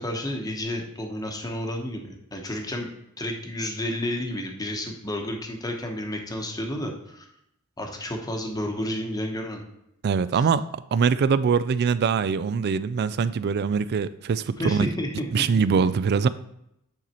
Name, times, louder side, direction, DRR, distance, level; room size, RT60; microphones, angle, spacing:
voice 1, 0.0-2.9 3.2-7.3 7.8-9.6 14.6-15.2, left 1 dB, 15° left, 2 dB, 1.0 m, -31 dB
voice 2, 10.0-14.9 15.3-16.3, right 6 dB, 50° right, 15 dB, 0.3 m, -23 dB
9.0 x 4.1 x 4.3 m, 0.79 s
head